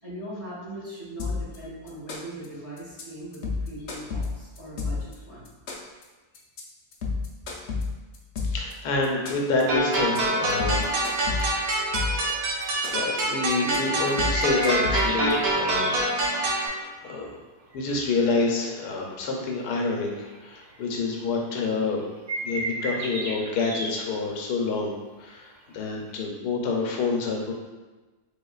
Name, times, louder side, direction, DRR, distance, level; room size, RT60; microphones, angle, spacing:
voice 1, 0.0-5.5, right 1 dB, 20° right, -8 dB, 1.3 m, -40 dB
sound 1, 1.2-1.6 1.9-2.5 2.8-3.0 3.3-5.1 5.5-6.0 6.3-6.6 6.9-8.7 9.0-9.6 9.9-10.2 10.5-12.3 12.6-13.2 13.5-13.8 14.1-15.3, left 4 dB, 65° left, 0.6 m, -30 dB
voice 2, 8.4-10.9 11.4-11.8 12.1-12.3 12.9-16.0 16.4-17.3 17.7-22.0 22.4-27.5, left 3 dB, 85° left, 0 dB, 1.2 m, -28 dB
sound 2, 9.0-9.3 10.2-10.3 10.8-11.1 11.4-11.5 11.8-12.0 12.4-16.0 16.4-17.2 17.7-19.1 19.5-19.6 19.8-21.0 21.5-21.6 21.8-23.9 25.3-25.4 26.1-26.2, right 2 dB, 50° right, 0.5 m, -34 dB
sound 3, 9.7-16.7, right 1 dB, 75° right, 1.4 m, -26 dB
3.8 x 3.6 x 2.3 m, 1.2 s
omnidirectional pair, 1.7 m